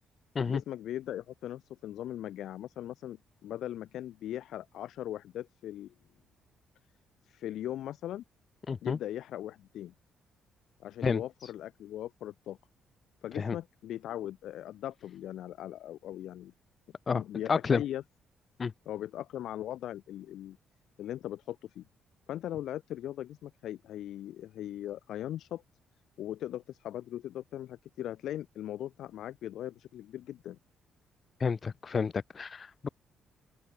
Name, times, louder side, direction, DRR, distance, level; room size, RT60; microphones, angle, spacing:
voice 1, 0.4-5.9 7.2-8.2 8.8-9.9 10.8-12.6 13.2-16.5 17.1-18.0 18.8-20.6 21.0-21.8 22.3-25.6 26.2-30.6, left 12 dB, 75° left, 1.1 m, -39 dB
voice 2, 8.7-9.0 11.0-11.2 13.4-13.6 17.1-17.2 17.5-17.8 18.6-18.7 31.4-32.9, left 5 dB, 40° left, 0.4 m, -30 dB
cardioid pair, 90°, 0 cm